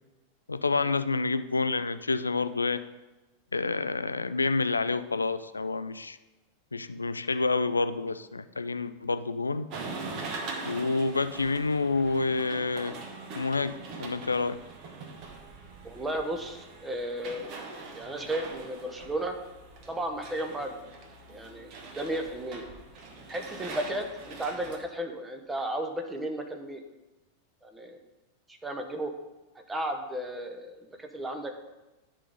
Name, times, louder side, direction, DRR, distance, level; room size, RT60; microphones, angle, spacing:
voice 1, 0.5-2.8 3.5-6.2 6.7-9.7 10.6-12.9 13.3-14.6, left 3 dB, 80° left, 12 dB, 0.3 m, -28 dB
sound 1, 9.7-24.8, right 3 dB, 40° right, 1.2 m, -42 dB
voice 2, 15.8-17.4 17.9-19.4 19.9-20.8 21.3-22.6 23.3-26.8 27.6-28.0 28.5-29.1 29.7-31.6, right 1 dB, 10° right, 5 dB, 1.0 m, -34 dB
11.0 x 3.8 x 5.3 m, 1.1 s
figure-of-eight pair, 90°, 0 cm